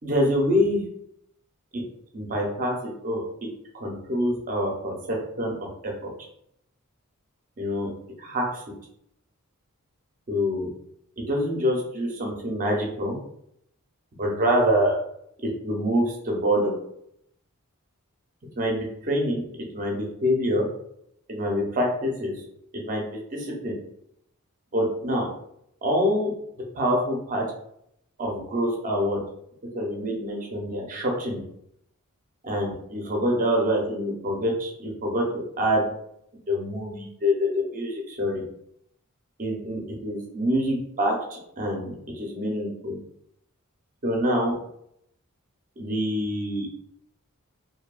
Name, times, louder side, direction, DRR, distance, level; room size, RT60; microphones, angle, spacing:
voice 1, 0.0-0.8 2.1-3.2 3.7-5.5 5.8-6.1 7.6-7.9 8.2-8.6 10.3-10.7 11.2-13.2 14.1-15.0 15.4-16.8 18.6-19.5 19.7-20.7 21.3-22.4 22.7-23.8 24.7-25.3 25.8-26.3 26.7-27.5 28.2-29.2 29.7-31.4 32.4-35.3 35.6-35.9 36.5-38.4 39.4-43.0 44.0-44.5 45.8-46.7, equal, 35° right, 0 dB, 0.6 m, -26 dB
2.7 x 2.2 x 2.3 m, 0.74 s
head